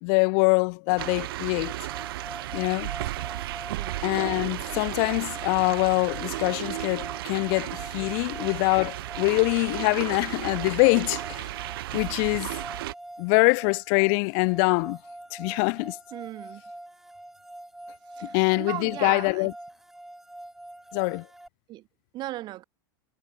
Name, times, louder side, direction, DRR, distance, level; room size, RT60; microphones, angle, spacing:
voice 1, 0.0-1.7 2.5-2.9 4.0-11.5 11.9-12.5 13.2-15.0 15.3-16.0 18.2-19.5 20.9-21.2, left 40 dB or more, 50° left, 1.3 m, -24 dB
sound 1, 1.0-12.9, right 16 dB, 75° right, 1.4 m, -34 dB
sound 2, 1.7-21.5, right 1 dB, 5° right, 1.7 m, -44 dB
voice 2, 16.1-16.6 18.1-19.5 21.7-21.9 22.1-22.6, right 16 dB, 35° right, 3.2 m, -37 dB
supercardioid pair, 145°, 12 cm